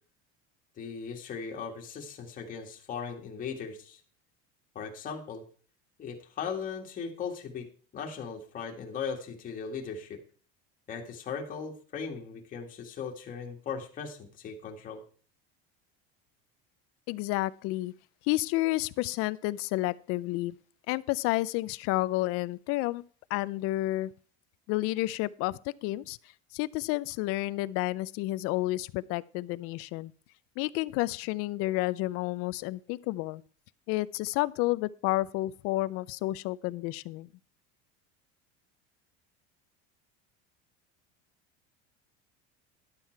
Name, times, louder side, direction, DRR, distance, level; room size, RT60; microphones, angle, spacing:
voice 1, 0.8-4.0 4.8-5.4 6.0-10.2 10.9-15.0, left 6 dB, 25° left, 1.9 m, -38 dB
voice 2, 17.1-17.9 18.3-20.6 20.9-23.0 23.3-24.1 24.7-26.2 26.5-30.1 30.6-33.4 33.9-37.3, left 18 dB, 50° left, 0.4 m, -30 dB
11.5 x 7.3 x 4.5 m
cardioid pair, 160°, 31 cm